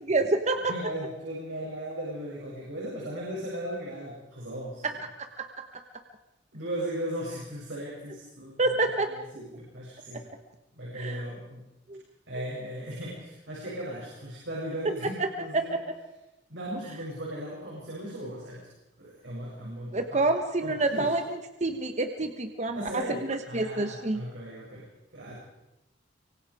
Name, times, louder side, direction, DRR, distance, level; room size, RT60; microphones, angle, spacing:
voice 1, 0.0-0.7 4.8-4.9 5.4-5.6 8.6-9.1 11.0-11.2 11.9-12.0 15.2-15.8 19.9-24.2, right 2 dB, 40° right, 6 dB, 1.3 m, -28 dB
voice 2, 0.7-4.8 6.5-10.3 10.7-11.7 12.3-15.8 16.5-18.7 19.0-20.3 20.6-21.1 22.7-25.4, right 1 dB, 90° right, -5 dB, 7.5 m, -37 dB
24.5 x 24.5 x 4.9 m, 0.96 s
head